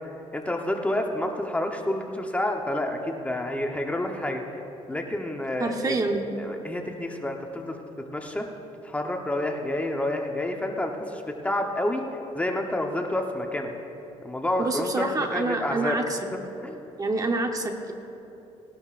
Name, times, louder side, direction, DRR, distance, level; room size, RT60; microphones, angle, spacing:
voice 1, 0.3-4.6 4.9-6.0 6.4-7.8 8.1-8.5 8.8-12.0 12.3-13.7 14.2-16.0 16.3-16.8, left 1 dB, 10° left, 2 dB, 0.9 m, -29 dB
voice 2, 5.6-6.2 14.6-16.2 17.0-17.9, right 2 dB, 30° right, 4 dB, 1.0 m, -27 dB
18.5 x 11.5 x 2.5 m, 3.0 s
cardioid pair, 100°, 12 cm